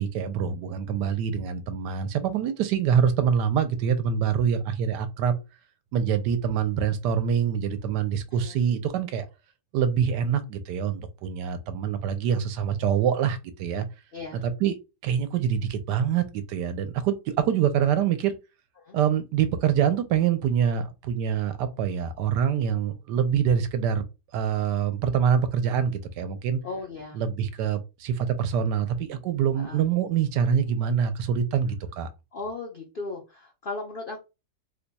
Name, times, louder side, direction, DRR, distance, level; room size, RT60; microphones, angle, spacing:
voice 1, 0.0-5.3 5.9-9.3 9.7-13.8 14.3-14.8 15.0-18.3 18.9-24.0 24.3-26.6 27.1-32.1, right 8 dB, 80° right, 1.2 m, -25 dB
voice 2, 8.3-8.6 14.1-14.4 18.8-19.0 26.6-27.2 29.6-29.8 32.3-34.2, left 3 dB, 65° left, 0.5 m, -36 dB
3.1 x 2.2 x 3.9 m
omnidirectional pair, 1.8 m